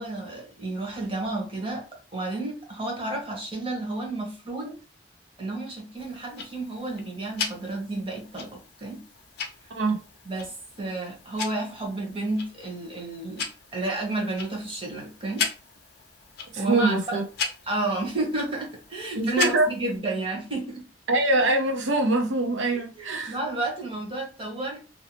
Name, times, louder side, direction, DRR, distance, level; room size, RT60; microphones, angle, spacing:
voice 1, 0.0-1.8 2.1-4.8 5.4-9.0 10.2-15.5 16.6-17.2 17.7-20.8 22.7-24.8, right 2 dB, 30° right, 1.0 m, -31 dB
Tick-tock, 6.0-20.0, left 5 dB, 55° left, 0.6 m, -37 dB
voice 2, 16.5-17.2 19.2-19.7 21.1-23.4, right 2 dB, 80° right, 0.7 m, -23 dB
2.6 x 2.0 x 3.0 m
head